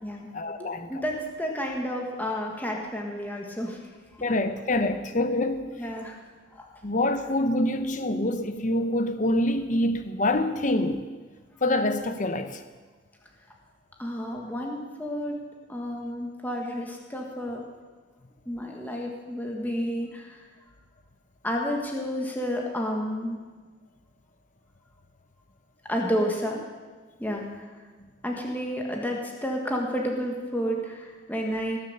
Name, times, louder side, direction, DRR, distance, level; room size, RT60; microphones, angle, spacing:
voice 1, 0.3-1.0 4.2-5.7 6.8-11.1 11.6-12.6 29.1-29.2, left 1 dB, 40° left, 0.8 m, -26 dB
voice 2, 0.9-3.8 4.1-4.3 5.8-6.2 6.5-6.7 14.0-15.4 15.7-17.6 18.4-20.5 21.4-23.4 25.9-26.6 27.2-27.4 28.2-31.8, equal, 10° left, 1.6 m, -30 dB
19.0 x 7.3 x 6.8 m
head